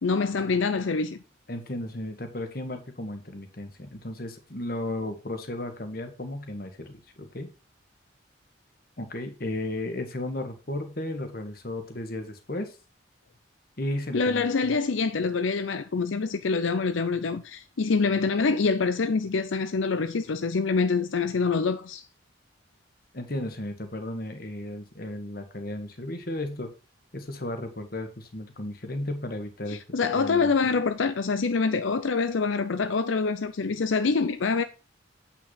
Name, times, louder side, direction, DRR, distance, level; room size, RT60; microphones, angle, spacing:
voice 1, 0.0-1.2 14.1-22.1 29.7-34.6, left 4 dB, 85° left, 0.6 m, -25 dB
voice 2, 1.5-7.5 9.0-12.7 13.8-14.8 23.1-26.7 27.1-29.8 30.1-30.7, left 1 dB, 50° left, 1.5 m, -34 dB
8.0 x 5.9 x 4.0 m
head